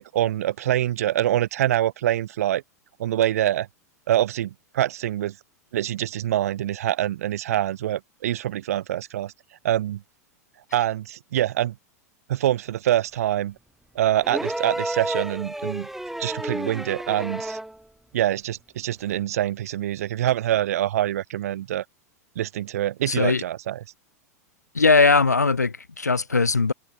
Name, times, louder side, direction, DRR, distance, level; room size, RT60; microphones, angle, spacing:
voice 1, 0.0-2.6 3.0-3.7 4.1-5.3 5.7-9.3 9.6-10.0 10.7-11.7 12.3-13.5 13.9-15.9 16.2-17.6 18.1-21.8 22.4-23.8, right 12 dB, 65° right, 1.1 m, -25 dB
sound 1, 14.2-17.8 19.1-19.2, right 1 dB, 5° right, 2.0 m, -31 dB
voice 2, 23.1-23.4 24.7-26.7, left 4 dB, 85° left, 2.8 m, -19 dB
figure-of-eight pair, 95°, 9 cm